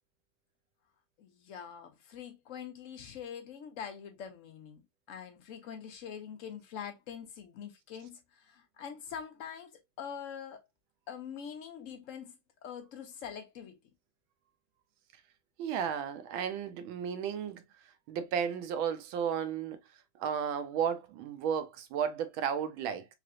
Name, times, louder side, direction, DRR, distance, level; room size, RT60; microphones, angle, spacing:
voice 1, 1.2-4.8 5.1-10.6 11.1-12.3 12.6-13.8, left 8 dB, 80° left, 0.7 m, -44 dB
voice 2, 15.6-19.8 20.1-23.1, right 8 dB, 85° right, 1.4 m, -34 dB
3.7 x 3.3 x 2.4 m
omnidirectional pair, 2.2 m